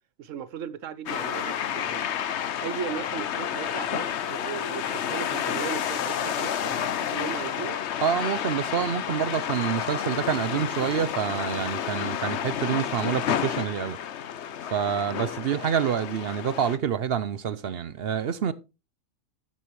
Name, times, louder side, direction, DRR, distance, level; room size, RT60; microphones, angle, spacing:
voice 1, 0.2-2.0 2.6-7.8, right 8 dB, 75° right, 1.1 m, -37 dB
sound 1, 1.1-16.8, left 9 dB, 60° left, 1.0 m, -30 dB
voice 2, 8.0-14.0 14.7-18.5, right 8 dB, 60° right, 0.8 m, -27 dB
12.5 x 8.6 x 3.1 m
omnidirectional pair, 1.3 m